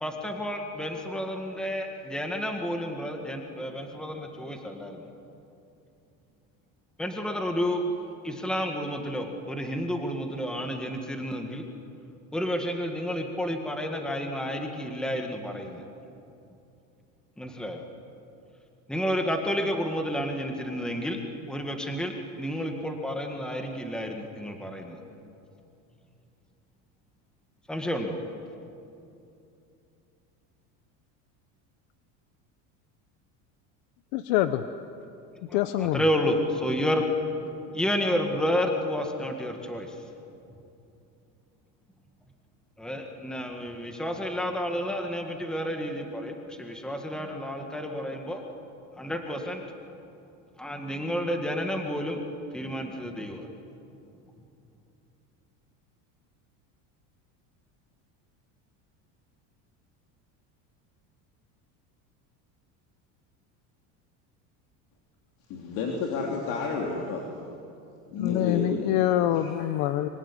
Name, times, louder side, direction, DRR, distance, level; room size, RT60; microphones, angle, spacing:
voice 1, 0.0-5.1 7.0-7.8 8.2-11.6 12.3-15.8 17.4-17.8 18.9-21.2 21.5-25.0 27.7-28.2 35.5-37.0 37.7-40.0 42.8-48.4 49.0-49.6 50.6-52.2 52.5-53.5, equal, ahead, 3 dB, 1.9 m, -30 dB
voice 2, 34.1-34.6 35.5-36.0 68.2-70.1, left 13 dB, 70° left, 10 dB, 1.1 m, -25 dB
voice 3, 65.5-67.3 68.1-68.9 69.4-69.7, left 4 dB, 55° left, 0 dB, 3.6 m, -31 dB
24.5 x 24.0 x 10.0 m, 2.7 s
cardioid pair, 160°, 37 cm